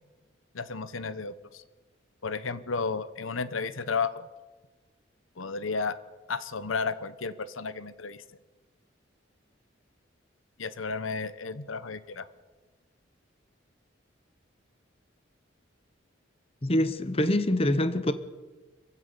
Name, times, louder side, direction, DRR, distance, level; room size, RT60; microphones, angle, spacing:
voice 1, 0.5-1.6 2.2-4.3 5.4-6.0 6.3-8.2 10.6-12.3, left 4 dB, 85° left, 1.0 m, -33 dB
voice 2, 16.6-18.1, left 1 dB, 30° left, 1.0 m, -25 dB
26.0 x 15.5 x 6.9 m
head